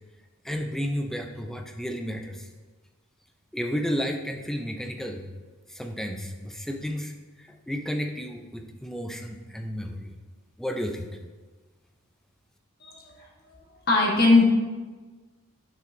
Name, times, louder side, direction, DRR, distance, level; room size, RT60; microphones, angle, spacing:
voice 1, 0.4-2.5 3.5-5.3 5.7-7.1 7.4-10.2 10.6-11.2, equal, ahead, 3 dB, 0.4 m, -32 dB
voice 2, 12.8-13.2 13.9-14.4, left 3 dB, 45° left, -2 dB, 1.4 m, -20 dB
9.2 x 5.7 x 2.6 m, 1.3 s
head